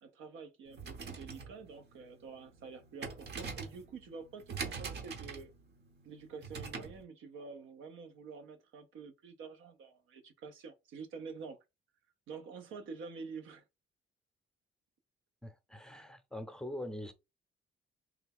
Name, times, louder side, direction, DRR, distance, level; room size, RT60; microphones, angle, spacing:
voice 1, 0.0-5.5 6.0-11.6 12.3-13.6, right 5 dB, 85° right, 0.7 m, -48 dB
sound 1, 0.7-7.0, right 5 dB, 55° right, 0.9 m, -44 dB
voice 2, 15.4-17.1, left 1 dB, 5° left, 0.7 m, -43 dB
3.4 x 2.2 x 3.5 m
cardioid pair, 90°, 20 cm